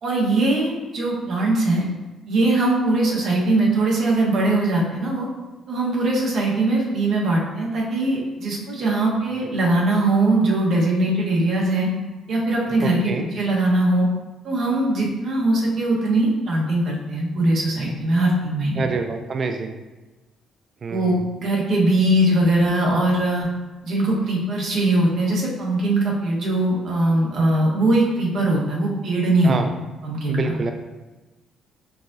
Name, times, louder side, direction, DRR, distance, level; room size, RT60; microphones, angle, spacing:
voice 1, 0.0-1.8 2.3-5.3 5.7-11.9 12.3-14.1 14.4-18.9 20.9-23.5 23.8-29.6 30.0-30.4, right 2 dB, 55° right, -3 dB, 1.1 m, -21 dB
voice 2, 12.8-13.3 18.8-19.7 20.8-21.2 29.4-29.7 30.3-30.7, right 4 dB, 40° right, 6 dB, 0.3 m, -26 dB
4.7 x 3.7 x 2.6 m, 1.2 s
cardioid pair, 120°, 0 cm